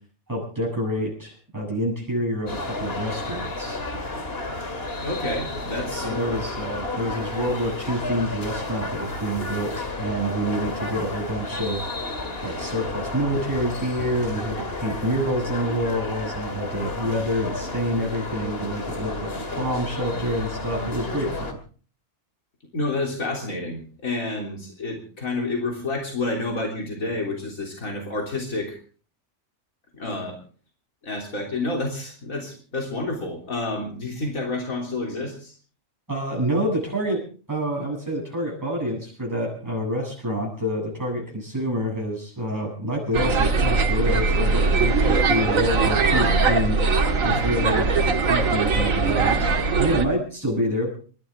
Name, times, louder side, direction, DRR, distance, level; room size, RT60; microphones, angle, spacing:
voice 1, 0.3-3.8 5.9-11.9 12.4-21.6 36.1-37.2 37.5-46.8 47.2-49.5 49.8-51.0, equal, 15° right, -3 dB, 8.0 m, -27 dB
sound 1, 2.5-21.5, left 2 dB, 45° left, 2.4 m, -32 dB
voice 2, 5.0-6.4 22.7-28.8 29.9-30.4 31.0-35.5, left 2 dB, 90° left, 1 dB, 3.9 m, -29 dB
sound 2, 43.1-50.0, right 4 dB, 85° right, 2.2 m, -21 dB
28.0 x 13.0 x 3.7 m, 0.40 s
omnidirectional pair, 1.4 m